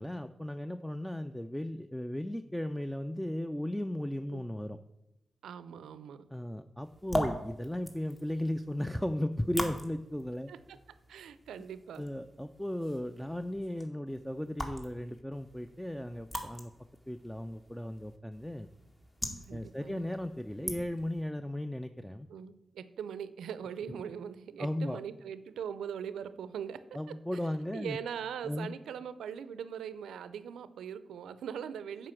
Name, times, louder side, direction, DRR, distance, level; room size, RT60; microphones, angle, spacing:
voice 1, 0.0-4.8 6.3-10.5 12.0-16.7 17.1-18.7 19.5-22.3 23.9-24.0 24.6-25.0 26.9-28.0 28.4-28.8, left 1 dB, 5° left, 9 dB, 0.5 m, -36 dB
voice 2, 5.4-6.3 10.5-10.8 11.1-12.1 19.4-20.1 22.3-26.8 27.3-32.1, right 8 dB, 85° right, 14 dB, 0.5 m, -41 dB
sound 1, 6.8-21.2, equal, 25° left, 1.9 m, -42 dB
7.6 x 5.0 x 7.2 m, 0.89 s
supercardioid pair, 40°, 0 cm